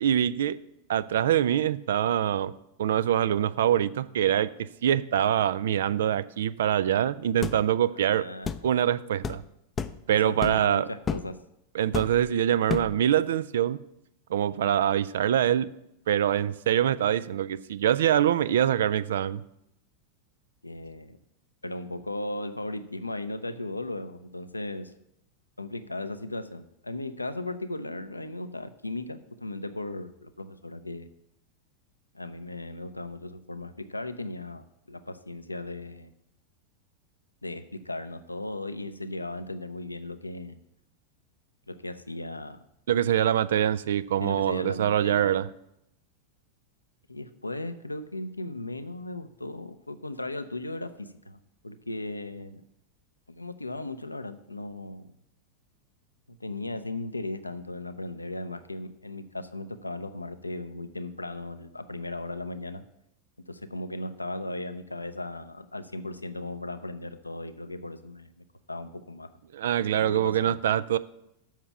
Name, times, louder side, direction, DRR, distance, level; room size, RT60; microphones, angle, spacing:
voice 1, 0.0-0.6 0.9-2.5 2.8-8.2 8.6-9.4 10.1-10.9 11.7-13.8 14.3-15.7 16.1-19.4 42.9-45.5 69.5-71.0, right 10 dB, 60° right, 16 dB, 0.3 m, -24 dB
sound 1, 7.4-7.6 8.5-8.7 9.2-9.4 9.8-10.0 10.4-10.7 11.1-11.3 11.9-12.3 12.7-13.0, left 6 dB, 20° left, 0.4 m, -31 dB
voice 2, 8.0-8.6 10.1-11.4 20.6-21.2 21.6-24.9 25.6-31.1 32.1-36.1 37.4-40.6 41.7-42.6 44.2-45.3 47.1-51.4 51.6-52.6 53.3-55.1 56.3-62.8 63.5-69.3 69.9-70.6, left 2 dB, 85° left, 10 dB, 0.5 m, -37 dB
7.3 x 5.8 x 7.1 m, 0.80 s
figure-of-eight pair, 90°, 0 cm